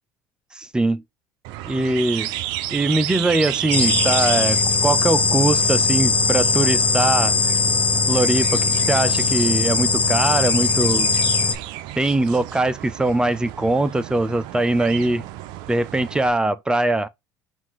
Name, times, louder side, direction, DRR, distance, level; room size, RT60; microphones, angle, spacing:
voice 1, 0.5-1.0 1.7-2.3 2.7-7.4 8.1-11.1 12.0-15.2 15.7-17.1, right 2 dB, 10° right, 0.5 m, -21 dB
sound 1, 1.4-16.3, right 14 dB, 70° right, 0.5 m, -33 dB
sound 2, 3.7-11.5, left 5 dB, 20° left, 0.8 m, -20 dB
5.7 x 2.6 x 3.1 m
supercardioid pair, 105°, 8 cm